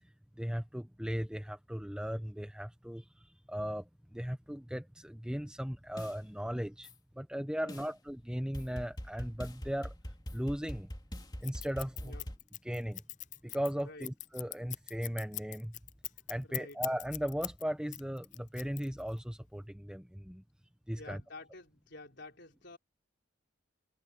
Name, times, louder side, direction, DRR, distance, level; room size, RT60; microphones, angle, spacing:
voice 1, 0.4-6.9 7.2-9.9 10.3-10.9 11.4-12.1 12.6-13.0 13.4-15.7 16.3-20.4 20.9-21.2, equal, 5° right, 0.9 m, -37 dB
sound 1, 6.0-6.1 6.8-6.9 7.7-7.9 8.5-12.4, equal, 20° left, 3.1 m, -43 dB
voice 2, 7.6-7.9 12.0-12.3 13.8-14.1 16.4-16.8 20.9-22.8, left 2 dB, 55° left, 4.5 m, -50 dB
Scissors, 11.4-17.6 17.9-19.2, left 17 dB, 40° left, 0.3 m, -41 dB
head